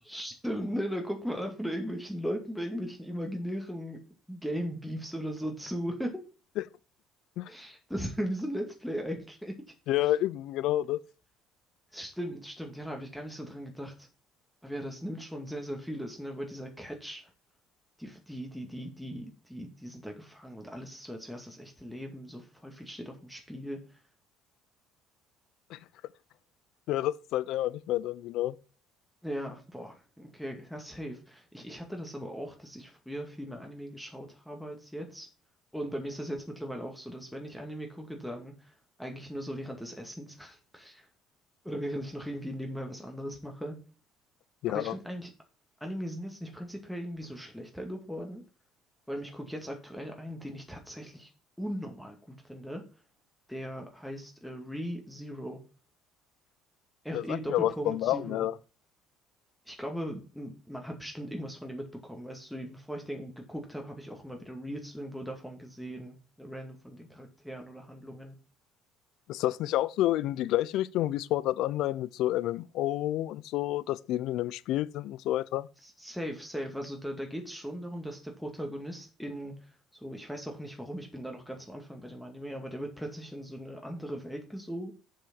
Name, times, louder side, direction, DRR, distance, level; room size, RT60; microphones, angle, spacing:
voice 1, 0.0-4.0 4.3-6.2 7.5-9.5 11.9-14.1 14.6-17.2 18.0-23.8 29.2-35.3 35.7-38.7 39.0-41.1 41.6-43.8 44.7-45.3 45.8-48.4 49.1-51.3 51.6-52.8 53.5-55.6 57.0-58.5 59.7-68.4 75.8-79.5 80.0-84.9, equal, ahead, 2.1 m, -38 dB
voice 2, 9.9-11.0 25.7-25.8 26.9-28.6 44.6-45.0 57.1-58.6 69.3-75.7, left 14 dB, 70° left, 0.5 m, -29 dB
6.9 x 6.2 x 6.1 m
supercardioid pair, 85°, 0 cm